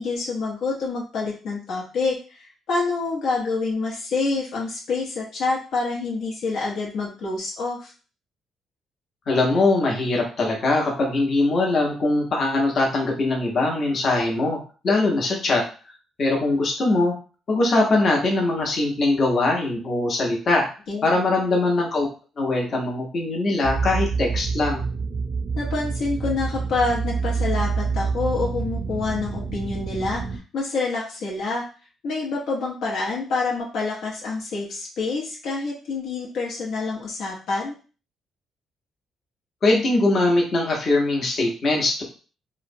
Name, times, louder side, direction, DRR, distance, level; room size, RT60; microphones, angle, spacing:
voice 1, 0.0-7.9 20.9-21.1 25.6-31.7 32.0-37.8, left 3 dB, 80° left, -3 dB, 0.8 m, -27 dB
voice 2, 9.3-14.6 14.8-15.6 16.2-17.1 17.5-20.7 21.0-22.1 22.4-24.9 39.6-42.0, left 2 dB, 50° left, -1 dB, 0.8 m, -21 dB
sound 1, 23.6-30.4, right 5 dB, 50° right, 0.5 m, -27 dB
3.0 x 2.0 x 2.6 m, 0.37 s
cardioid pair, 90°, 0 cm